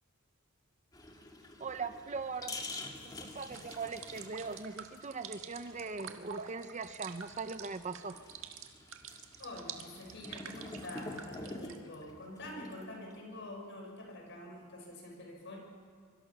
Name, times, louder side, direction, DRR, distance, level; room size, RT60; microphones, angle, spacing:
sound 1, 0.9-13.1, left 2 dB, 20° left, 2.1 m, -48 dB
voice 1, 1.6-2.6 3.0-8.2, right 4 dB, 35° right, 11 dB, 0.6 m, -40 dB
sound 2, 3.3-11.8, right 8 dB, 65° right, 1.7 m, -48 dB
voice 2, 9.4-15.6, left 1 dB, 55° left, 0 dB, 6.4 m, -46 dB
24.0 x 24.0 x 6.0 m, 2.1 s
head